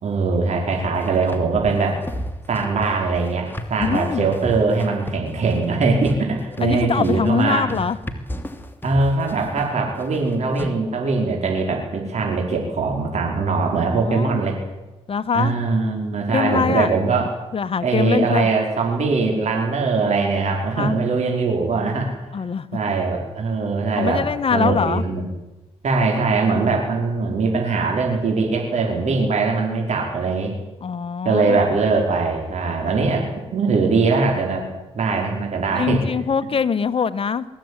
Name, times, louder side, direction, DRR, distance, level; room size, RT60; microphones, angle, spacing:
voice 1, 0.0-2.0 2.5-7.7 8.8-14.6 15.3-17.3 17.8-22.1 22.7-24.3 24.5-25.3 25.8-30.6 31.3-34.6 34.9-36.0, right 4 dB, 70° right, 1 dB, 5.1 m, -21 dB
sound 1, 0.7-10.7, equal, 15° left, 3.0 m, -33 dB
voice 2, 3.8-4.3 6.6-8.0 14.1-14.4 15.1-15.5 16.3-16.9 17.5-18.5 20.8-21.0 22.3-22.7 24.0-25.0 30.8-31.6 35.8-37.4, left 6 dB, 50° left, 11 dB, 1.5 m, -23 dB
22.5 x 15.5 x 10.0 m, 1.1 s
cardioid pair, 85°, 12 cm